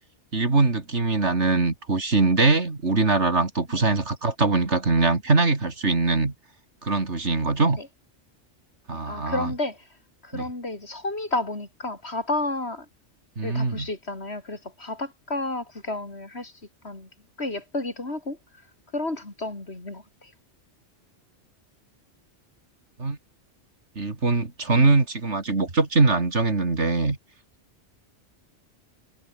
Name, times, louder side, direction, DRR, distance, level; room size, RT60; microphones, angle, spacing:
voice 1, 0.3-6.3 6.8-7.8 8.9-9.5 10.3-10.5 13.4-13.9 23.0-23.2 24.0-27.2, right 3 dB, 70° right, 3.3 m, -22 dB
voice 2, 8.9-9.9 10.2-12.9 13.4-16.5 16.8-17.1 17.4-18.4 18.9-20.3, left 2 dB, 60° left, 4.5 m, -31 dB
omnidirectional pair, 1.2 m